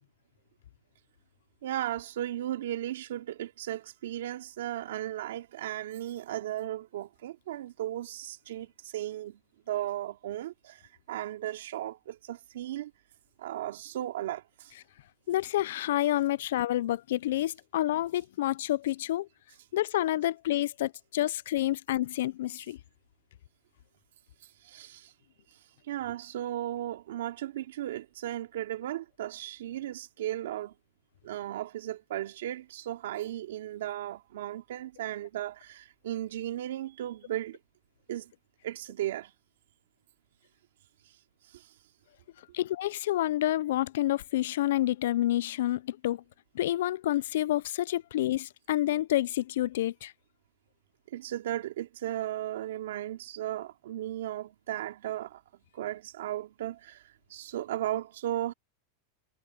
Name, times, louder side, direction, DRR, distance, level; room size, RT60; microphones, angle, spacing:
voice 1, 1.6-9.4 9.7-10.8 11.1-12.9 13.4-14.7 24.6-25.1 25.9-30.7 31.2-37.6 38.1-38.3 38.6-39.3 41.5-41.7 51.1-55.4 55.7-58.5, right 13 dB, 85° right, 2.6 m, -36 dB
voice 2, 15.3-19.3 19.7-22.8 42.5-46.2 46.5-50.1, left 14 dB, 70° left, 0.4 m, -28 dB
supercardioid pair, 170°, 0 cm